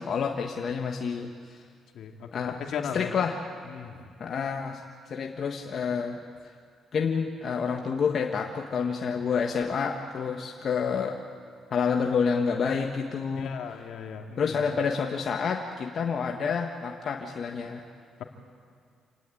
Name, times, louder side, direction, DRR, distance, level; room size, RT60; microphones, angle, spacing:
voice 1, 0.0-1.6 2.3-2.6 2.9-3.4 4.2-4.8 5.1-6.2 6.9-11.2 11.7-13.5 14.4-17.8, left 6 dB, 55° left, 2 dB, 1.6 m, -28 dB
voice 2, 1.9-3.1 3.7-4.0 13.3-14.5, left 7 dB, 75° left, 2 dB, 2.7 m, -36 dB
27.5 x 18.0 x 10.0 m, 2.2 s
cardioid pair, 90°, 0 cm